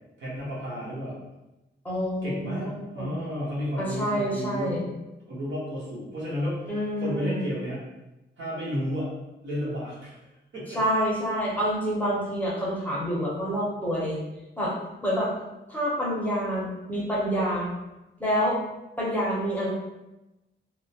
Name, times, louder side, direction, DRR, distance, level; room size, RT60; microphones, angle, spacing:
voice 1, 0.2-1.1 2.2-4.8 5.3-6.7 7.0-7.8 8.4-9.1 9.4-10.1 10.5-10.8, equal, 75° right, -7 dB, 1.0 m, -32 dB
voice 2, 1.8-2.7 3.0-3.1 3.8-4.9 6.7-7.5 10.7-14.2 14.6-14.7 15.0-15.3 15.7-17.7 18.2-18.6 19.0-19.7, equal, 10° left, -6 dB, 0.7 m, -27 dB
2.9 x 2.0 x 2.8 m, 0.99 s
wide cardioid pair, 145°, 20 cm